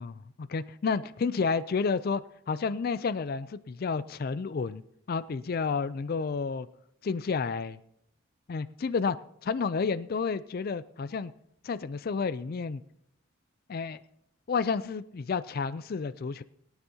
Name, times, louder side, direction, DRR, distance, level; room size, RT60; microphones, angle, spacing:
voice 1, 0.0-4.8 5.1-6.7 7.0-7.8 8.5-11.3 11.6-12.8 13.7-14.0 14.5-16.4, left 5 dB, 45° left, 14 dB, 0.4 m, -31 dB
21.5 x 9.6 x 2.8 m, 0.74 s
head